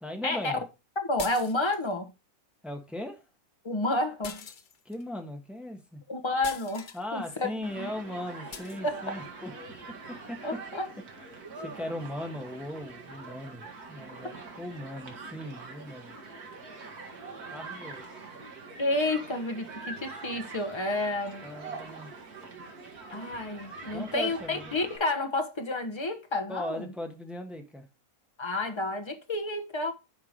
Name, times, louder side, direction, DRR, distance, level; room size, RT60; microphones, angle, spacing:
voice 1, 0.0-0.6 2.6-3.2 4.8-6.0 6.9-9.5 10.3-10.4 11.3-16.2 17.5-18.0 21.4-22.1 23.9-24.6 26.5-27.8, left 1 dB, ahead, 1.2 m, -38 dB
voice 2, 1.0-2.1 3.6-4.5 6.1-7.9 8.8-9.0 10.4-10.9 11.5-11.7 18.8-21.4 23.1-26.9 28.4-29.9, left 2 dB, 20° left, 0.9 m, -30 dB
sound 1, 1.2-1.9 4.2-5.0 6.4-7.0 8.5-8.8, left 6 dB, 50° left, 0.6 m, -42 dB
Human group actions, 7.6-25.0, right 3 dB, 75° right, 2.2 m, -44 dB
8.3 x 4.8 x 5.0 m
omnidirectional pair, 1.7 m